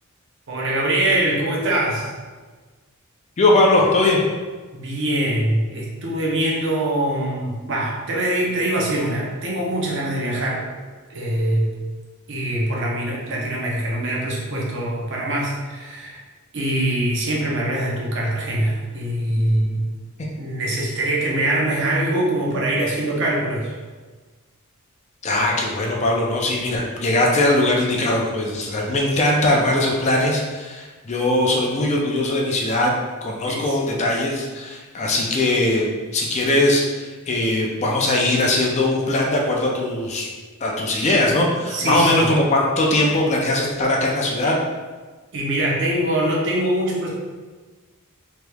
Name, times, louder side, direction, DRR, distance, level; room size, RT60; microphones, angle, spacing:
voice 1, 0.5-2.1 4.7-10.7 11.1-11.7 12.3-16.2 16.5-19.8 20.4-23.7 33.5-33.8 41.7-42.3 45.3-47.1, right 1 dB, 55° right, -3 dB, 0.7 m, -23 dB
voice 2, 3.4-4.2 25.2-32.9 33.2-40.3 40.6-44.5, left 1 dB, 30° left, -1 dB, 0.4 m, -20 dB
3.3 x 3.0 x 2.2 m, 1.4 s
head